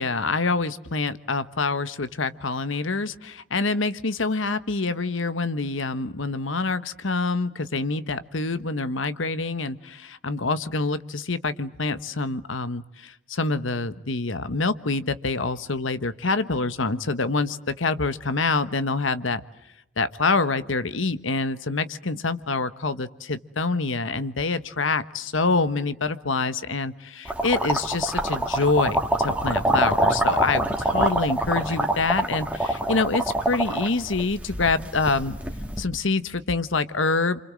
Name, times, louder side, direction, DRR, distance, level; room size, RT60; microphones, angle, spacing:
voice 1, 0.0-19.4 20.0-35.3 35.8-37.4, left 3 dB, 85° left, 13 dB, 1.3 m, -26 dB
sound 1, 27.2-35.8, right 1 dB, 10° right, 1.9 m, -25 dB
28.5 x 26.0 x 7.6 m, 0.85 s
head